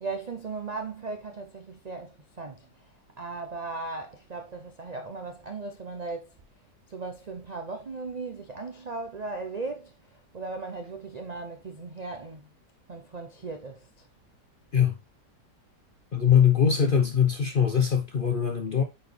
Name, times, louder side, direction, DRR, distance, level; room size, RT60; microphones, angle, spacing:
voice 1, 0.0-2.7 3.2-6.3 6.9-12.5 12.9-13.9, right 3 dB, 85° right, 0.3 m, -37 dB
voice 2, 16.1-18.8, left 8 dB, 60° left, 0.5 m, -22 dB
9.0 x 4.1 x 3.2 m
omnidirectional pair, 1.8 m